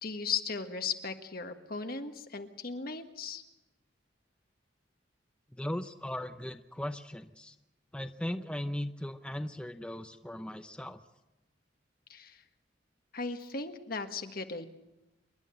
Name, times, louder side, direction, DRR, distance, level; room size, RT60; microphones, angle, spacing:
voice 1, 0.0-3.4 12.1-12.4 13.1-14.7, left 5 dB, 55° left, 7 dB, 1.6 m, -37 dB
voice 2, 5.5-7.5 7.9-11.0, left 1 dB, 5° left, 8 dB, 0.7 m, -38 dB
27.5 x 11.5 x 9.0 m, 0.99 s
head